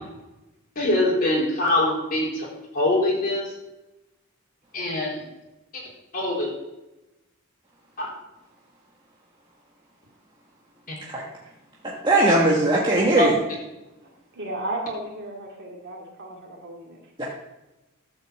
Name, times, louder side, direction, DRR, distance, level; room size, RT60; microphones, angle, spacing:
voice 1, 0.8-2.5 2.7-3.4 4.7-5.2 5.7-5.8 6.1-6.5 8.0-8.1 10.9-11.0 13.2-13.3, left 2 dB, 40° left, -3 dB, 3.7 m, -23 dB
voice 2, 11.8-13.4 17.2-17.3, right 2 dB, 20° right, -4 dB, 1.5 m, -19 dB
voice 3, 14.3-17.0, right 1 dB, 55° right, -2 dB, 2.5 m, -34 dB
12.5 x 5.5 x 7.3 m, 0.99 s
head